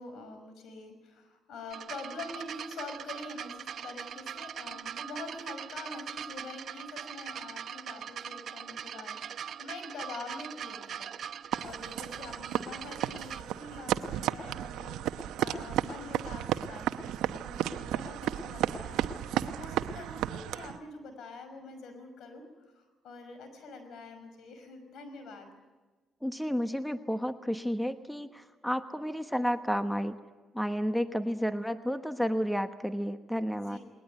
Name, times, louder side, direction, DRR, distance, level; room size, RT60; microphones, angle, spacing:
voice 1, 0.0-14.9 15.4-22.4 22.7-25.5 33.6-33.8, left 3 dB, 75° left, 7 dB, 5.6 m, -45 dB
sound 1, 1.7-13.4 14.3-14.4, right 8 dB, 65° right, 1.0 m, -41 dB
sound 2, 11.5-20.8, right 11 dB, 90° right, 0.8 m, -33 dB
voice 2, 26.2-30.2 30.5-33.8, equal, ahead, 8 dB, 1.1 m, -31 dB
20.5 x 20.0 x 9.4 m, 1.3 s
cardioid pair, 90°, 0 cm